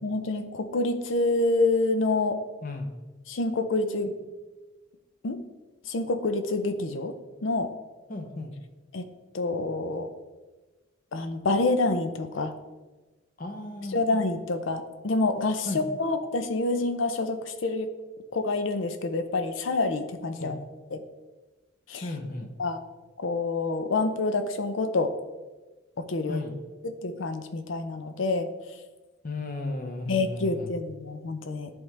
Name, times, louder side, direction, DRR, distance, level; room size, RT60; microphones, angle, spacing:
voice 1, 0.0-2.4 3.3-4.1 5.2-5.4 5.9-7.1 7.4-7.7 8.9-9.1 9.3-10.1 11.1-12.5 13.9-17.9 18.3-20.6 20.9-21.0 21.9-22.1 22.6-22.8 23.2-25.1 26.0-26.4 26.8-28.5 30.1-31.7, left 3 dB, 80° left, 9 dB, 0.6 m, -27 dB
voice 2, 8.1-8.5 13.4-14.0 15.7-15.8 20.4-20.6 22.0-22.5 26.3-26.5 29.2-30.7, left 2 dB, 45° left, 4 dB, 0.7 m, -34 dB
10.5 x 3.6 x 3.3 m, 1.2 s
head